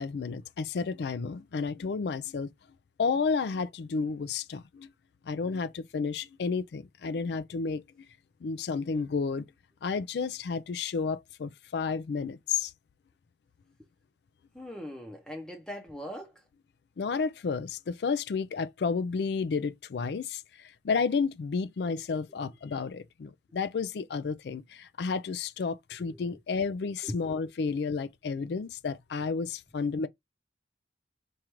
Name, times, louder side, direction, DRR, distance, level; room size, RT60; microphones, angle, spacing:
voice 1, 0.0-2.5 3.0-4.9 5.2-7.8 8.4-9.5 9.8-12.7 17.0-30.1, left 5 dB, 65° left, 0.4 m, -31 dB
voice 2, 14.5-16.4 26.0-26.2 27.0-27.1, equal, 5° left, 0.7 m, -40 dB
4.6 x 2.5 x 3.0 m
head